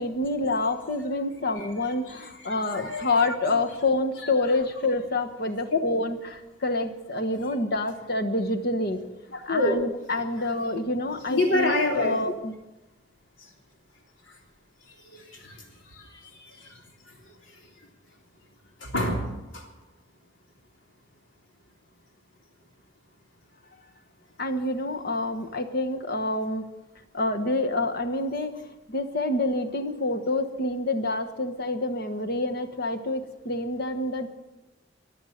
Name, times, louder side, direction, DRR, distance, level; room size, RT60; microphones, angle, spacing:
voice 1, 0.0-9.0 9.5-12.5 24.4-26.6 27.1-28.6 28.9-34.3, left 2 dB, 55° left, 6 dB, 1.3 m, -27 dB
voice 2, 2.1-3.6 4.2-4.3 5.7-5.8 9.3-9.7 11.3-12.2 13.4-13.5 15.0-16.8 17.1-17.2 18.8-19.7, left 2 dB, 80° left, 1 dB, 3.3 m, -28 dB
23.5 x 8.1 x 6.6 m, 1.0 s
head